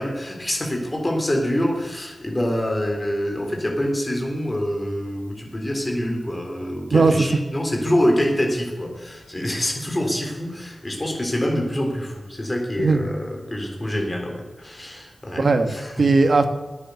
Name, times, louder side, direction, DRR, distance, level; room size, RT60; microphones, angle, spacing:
voice 1, 0.0-16.0, equal, 20° left, 1 dB, 3.7 m, -25 dB
voice 2, 15.4-16.5, right 3 dB, 65° right, 7 dB, 1.4 m, -18 dB
14.5 x 9.9 x 7.0 m, 1.2 s
wide cardioid pair, 100°, 0 cm